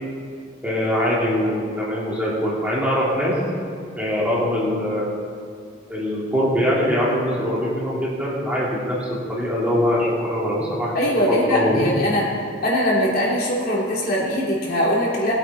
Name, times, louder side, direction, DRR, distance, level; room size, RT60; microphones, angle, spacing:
voice 1, 0.6-3.4 4.0-5.1 5.9-10.9 11.3-11.8, equal, 10° right, -7 dB, 2.7 m, -22 dB
voice 2, 10.9-12.2 12.6-15.3, equal, 50° left, -5 dB, 3.1 m, -21 dB
19.5 x 9.0 x 4.2 m, 2.3 s
head